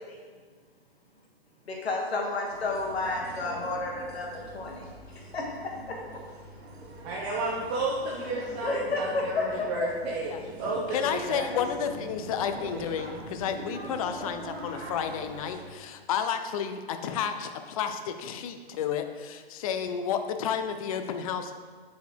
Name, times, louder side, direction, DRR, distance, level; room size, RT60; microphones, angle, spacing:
voice 1, 1.7-4.9 5.3-6.0 8.6-10.1, left 3 dB, 80° left, -1 dB, 1.6 m, -31 dB
sound 1, 2.5-15.6, right 1 dB, 85° right, 1.5 m, -43 dB
voice 2, 7.0-10.3 10.6-11.6, right 2 dB, 30° right, -3 dB, 0.9 m, -32 dB
voice 3, 10.9-21.6, left 8 dB, 35° left, 7 dB, 0.4 m, -31 dB
6.9 x 4.3 x 4.4 m, 1.5 s
hypercardioid pair, 140°, 31 cm